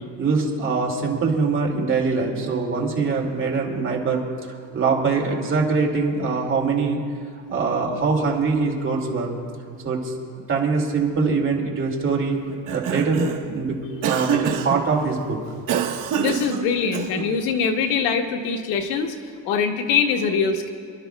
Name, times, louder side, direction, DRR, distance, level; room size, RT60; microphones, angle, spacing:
voice 1, 0.2-4.2 4.7-7.0 7.5-9.3 9.8-10.1 10.5-12.4 12.7-13.8 14.0-15.4, right 4 dB, 30° right, -1 dB, 2.3 m, -23 dB
Cough, 12.5-13.5 14.0-14.8 15.7-17.3, right 8 dB, 50° right, 1.0 m, -26 dB
voice 2, 16.2-19.1 19.4-20.7, left 6 dB, 90° left, 5 dB, 1.3 m, -23 dB
28.5 x 12.0 x 2.3 m, 2.3 s
cardioid pair, 150°, 41 cm